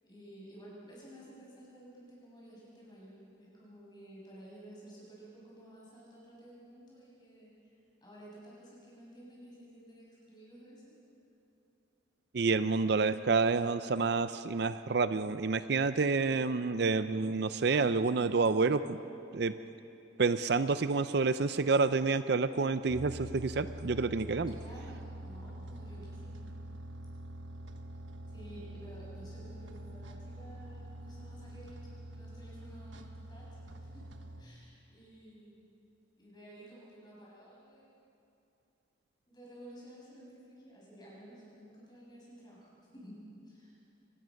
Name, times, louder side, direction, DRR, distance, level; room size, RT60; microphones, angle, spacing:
voice 1, 0.0-7.7 8.0-10.8 24.5-26.5 28.3-33.5 33.8-34.1 34.4-35.6 36.2-38.2 39.3-43.1 43.4-43.8, right 1 dB, 20° left, -6 dB, 7.4 m, -53 dB
voice 2, 12.3-19.0 19.3-19.5 20.2-24.6, right 4 dB, 55° right, 12 dB, 0.5 m, -28 dB
sound 1, 22.9-34.4, right 1 dB, 75° right, 1.3 m, -45 dB
25.0 x 19.0 x 6.4 m, 2.7 s
head